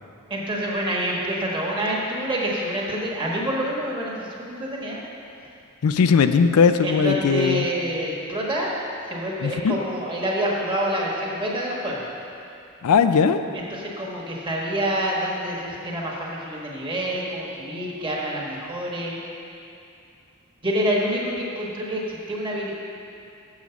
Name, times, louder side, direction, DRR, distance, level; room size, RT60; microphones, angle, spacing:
voice 1, 0.3-5.0 6.8-8.7 9.1-12.0 13.5-19.2 20.6-22.7, equal, 25° right, -3 dB, 1.4 m, -27 dB
voice 2, 5.8-7.7 9.4-9.8 12.8-13.4, left 6 dB, 90° left, 9 dB, 0.4 m, -18 dB
7.2 x 6.2 x 7.0 m, 2.6 s
head